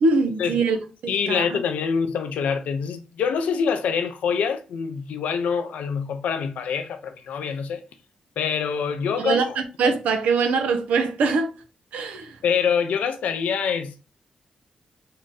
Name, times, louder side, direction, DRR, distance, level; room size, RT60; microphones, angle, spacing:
voice 1, 0.0-0.8 1.3-1.6 9.2-11.5 11.9-12.4, right 4 dB, 85° right, 0.6 m, -22 dB
voice 2, 1.1-7.8 8.4-9.4 12.4-14.1, left 6 dB, 85° left, 0.5 m, -25 dB
3.7 x 2.1 x 3.9 m
supercardioid pair, 45°, 2 cm